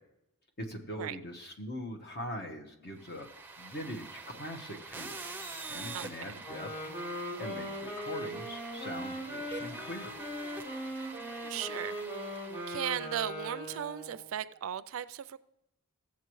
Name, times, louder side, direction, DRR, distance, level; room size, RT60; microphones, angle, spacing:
voice 1, 0.6-5.2 5.7-6.7 7.4-10.1, equal, 45° left, 1.2 m, -42 dB
sound 1, 3.0-13.2, right 3 dB, 10° right, 0.6 m, -46 dB
voice 2, 5.9-6.4 11.4-12.0 12.7-15.4, right 10 dB, 65° right, 0.3 m, -37 dB
Wind instrument woodwind instrument, 6.4-14.3, equal, 20° left, 4.6 m, -40 dB
16.0 x 7.4 x 3.1 m
head